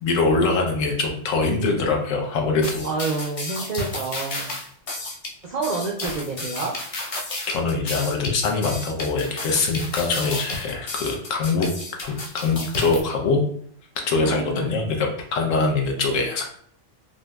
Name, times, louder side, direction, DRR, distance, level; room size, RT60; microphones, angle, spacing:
voice 1, 0.0-2.9 7.5-11.7 12.0-13.4 14.1-16.4, left 3 dB, 90° left, 2 dB, 1.1 m, -23 dB
sound 1, 2.6-13.0, left 2 dB, 60° left, 0.3 m, -32 dB
voice 2, 2.8-4.5 5.4-6.7 14.1-14.7, right 4 dB, 75° right, -2 dB, 0.4 m, -28 dB
3.6 x 2.5 x 2.2 m, 0.62 s
omnidirectional pair, 1.3 m